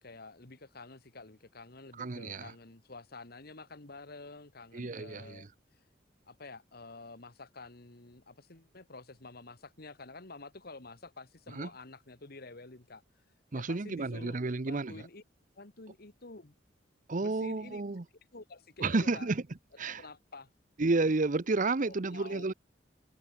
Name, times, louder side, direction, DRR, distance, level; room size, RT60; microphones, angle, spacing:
voice 1, 0.0-5.8 6.3-13.2 13.5-14.4 14.6-15.2 15.6-16.5 17.2-17.8 18.3-19.3 19.8-20.5 21.8-22.5, left 3 dB, 55° left, 2.0 m, -49 dB
voice 2, 2.0-2.5 4.7-5.5 11.6-11.7 13.5-14.9 17.1-18.0 18.8-19.4 19.8-20.0 20.8-22.5, right 3 dB, 45° right, 0.8 m, -31 dB
head